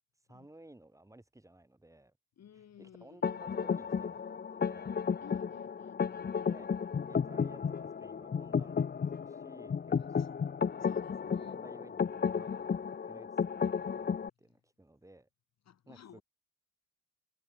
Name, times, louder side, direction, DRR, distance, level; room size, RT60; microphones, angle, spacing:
voice 1, 0.3-2.1 2.5-4.9 6.5-6.7 7.1-8.9 9.2-10.4 11.3-12.7 13.0-15.3 15.9-16.2, right 1 dB, 10° right, 5.5 m, -56 dB
voice 2, 2.4-3.3 5.2-6.6 10.2-10.3 10.8-11.6 15.7-16.2, left 9 dB, 60° left, 3.8 m, -55 dB
sound 1, 3.2-14.3, left 6 dB, 30° left, 1.0 m, -33 dB
cardioid pair, 90°, 30 cm